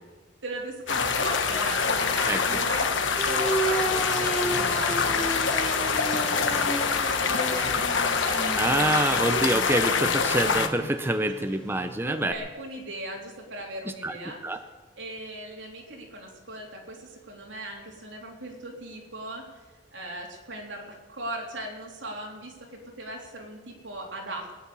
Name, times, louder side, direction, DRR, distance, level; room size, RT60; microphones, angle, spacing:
voice 1, 0.4-2.9 3.3-8.8 11.5-11.6 12.0-14.6 15.0-19.6 19.9-24.5, right 1 dB, 80° right, 0 dB, 3.5 m, -38 dB
sound 1, 0.9-10.7, left 5 dB, 80° left, 1.2 m, -25 dB
sound 2, 3.2-12.3, right 1 dB, 5° left, 1.4 m, -33 dB
voice 2, 8.6-12.3 14.0-14.1 14.4-14.6, right 1 dB, 10° right, 7 dB, 0.7 m, -26 dB
20.5 x 9.9 x 7.0 m, 1.3 s
head